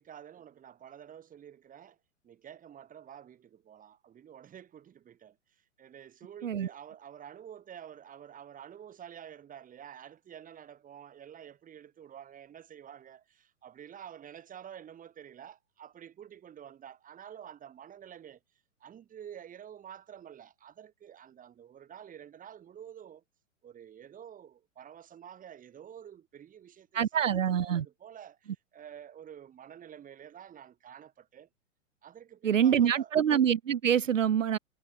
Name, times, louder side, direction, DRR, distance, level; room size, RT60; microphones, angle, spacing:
voice 1, 0.0-2.0 2.2-18.4 18.8-23.2 23.6-31.5 32.0-33.1, right 9 dB, 20° right, 4.8 m, -49 dB
voice 2, 26.9-27.9 32.4-34.6, right 9 dB, 75° right, 0.9 m, -25 dB
figure-of-eight pair, 110°, 39 cm